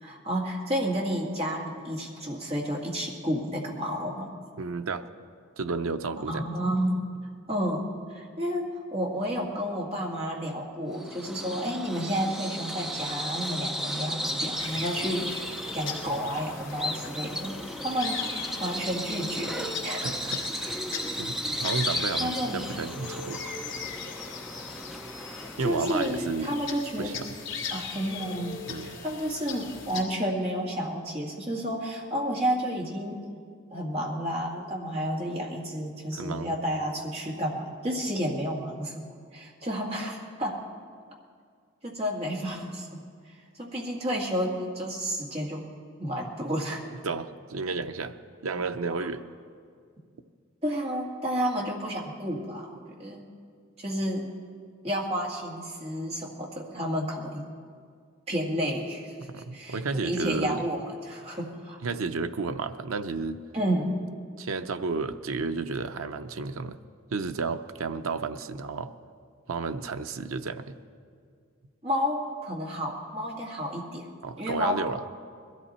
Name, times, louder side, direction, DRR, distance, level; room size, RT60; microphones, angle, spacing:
voice 1, 0.0-4.3 6.2-7.0 7.5-18.3 18.6-20.1 22.2-22.6 25.6-27.2 27.7-33.2 33.7-39.0 39.3-40.6 41.8-43.0 43.6-45.7 46.0-46.8 49.0-49.1 50.6-53.3 53.8-54.3 54.8-57.5 58.3-59.1 59.5-61.8 63.5-64.0 71.8-74.1 74.4-74.8, equal, 30° right, -2 dB, 1.9 m, -31 dB
voice 2, 4.6-5.0 5.6-6.4 20.0-20.8 21.1-23.4 25.6-26.6 27.0-27.3 28.7-28.9 36.1-36.5 47.0-48.2 48.4-49.2 59.2-60.6 61.8-63.4 64.4-66.8 67.1-68.9 69.5-70.8 74.2-75.1, right 4 dB, 90° right, 9 dB, 0.6 m, -32 dB
Bird vocalization bird call bird song, 10.9-25.7, equal, ahead, 0.4 m, -35 dB
sound 1, 14.6-30.0, left 5 dB, 60° left, 2.3 m, -39 dB
21.5 x 14.0 x 4.3 m, 2.1 s
head